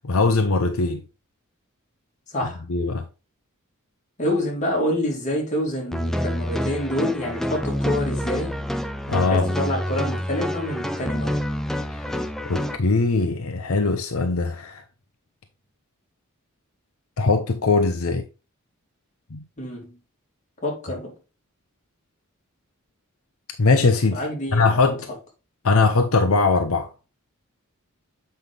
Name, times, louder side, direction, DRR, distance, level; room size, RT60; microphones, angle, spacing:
voice 1, 0.0-1.0 2.7-3.0 9.1-9.5 11.9-12.0 12.5-14.8 17.2-18.2 19.3-19.4 23.6-24.2 24.5-25.1 25.6-26.9, left 3 dB, 75° left, 0.7 m, -21 dB
voice 2, 2.3-2.6 4.2-8.6 9.2-11.4 19.6-20.0 20.6-21.1 24.1-25.0, left 1 dB, 35° left, 2.9 m, -27 dB
sound 1, 5.9-12.8, equal, ahead, 0.6 m, -27 dB
7.9 x 5.4 x 3.4 m
head